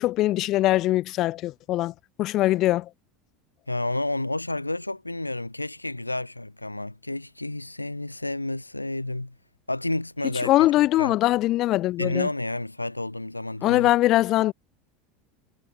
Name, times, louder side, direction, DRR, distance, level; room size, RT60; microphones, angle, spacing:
voice 1, 0.0-1.9 2.2-2.9 10.4-12.3 13.6-14.5, left 16 dB, 45° left, 5.8 m, -22 dB
voice 2, 3.7-9.3 9.7-10.5 11.0-11.1 12.0-13.9, left 2 dB, 90° left, 4.1 m, -30 dB
figure-of-eight pair, 75°, 0 cm